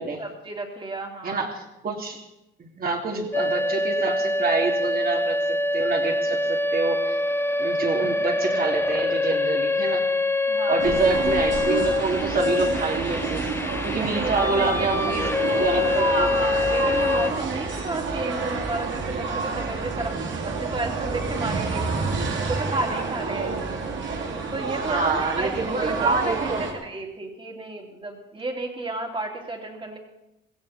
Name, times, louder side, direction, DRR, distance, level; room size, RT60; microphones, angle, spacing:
voice 1, 0.2-1.5 10.5-11.0 14.0-15.1 16.0-20.2 20.4-23.5 24.5-30.0, right 2 dB, 25° right, 2 dB, 3.0 m, -32 dB
voice 2, 1.2-2.2 2.6-7.2 7.6-10.1 10.7-13.4 13.8-16.3 24.7-26.6, right 4 dB, 50° right, 1 dB, 3.1 m, -27 dB
sound 1, 3.3-17.3, left 2 dB, 10° left, 0.9 m, -25 dB
sound 2, 10.8-26.7, right 4 dB, 70° right, 3.1 m, -29 dB
16.5 x 16.0 x 4.4 m, 0.90 s
cardioid pair, 90°, 20 cm